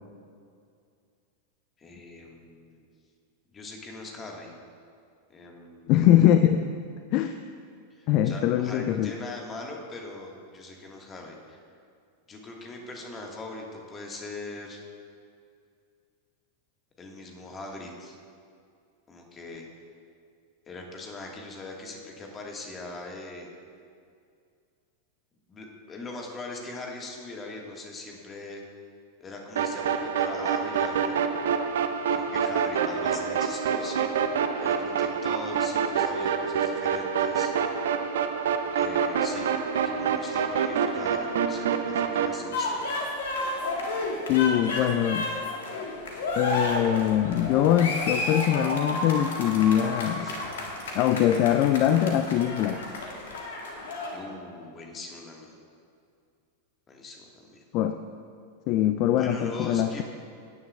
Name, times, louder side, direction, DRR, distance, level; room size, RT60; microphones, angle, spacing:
voice 1, 1.8-2.8 3.5-4.5 5.3-5.9 7.9-11.6 12.3-14.8 17.0-18.2 19.1-19.7 20.7-23.5 25.5-28.6 29.2-31.2 32.1-34.1 34.6-37.7 38.7-39.5 39.8-42.8 43.2-43.4 50.2-50.4 54.1-55.5 56.9-57.6 59.1-60.0, left 2 dB, 20° left, 0 dB, 1.7 m, -41 dB
voice 2, 5.9-6.6 7.1-7.3 8.1-9.1 44.3-45.3 46.4-50.3 50.9-52.8 57.7-58.0 58.7-60.0, left 11 dB, 40° left, 9 dB, 0.4 m, -22 dB
sound 1, 29.6-42.4, right 7 dB, 60° right, 0.7 m, -27 dB
sound 2, 42.5-54.2, left 2 dB, 60° left, 1.6 m, -32 dB
17.5 x 9.5 x 2.4 m, 2.3 s
figure-of-eight pair, 90°, 0 cm